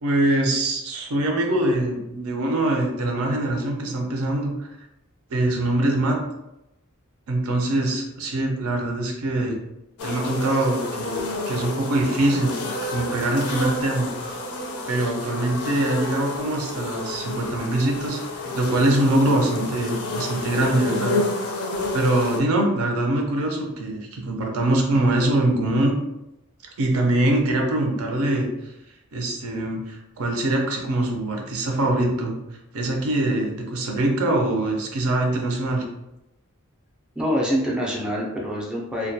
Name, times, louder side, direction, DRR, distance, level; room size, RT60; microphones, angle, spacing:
voice 1, 0.0-4.5 5.3-6.2 7.3-9.6 10.0-12.5 12.9-14.1 14.9-21.2 21.9-26.0 26.8-28.5 29.1-32.3 32.7-35.8, right 1 dB, 70° right, 1 dB, 0.5 m, -23 dB
sound 1, 10.0-22.4, left 2 dB, 75° left, 0.4 m, -30 dB
voice 2, 37.2-39.1, equal, 5° right, -4 dB, 0.4 m, -25 dB
2.2 x 2.1 x 2.6 m, 0.90 s
head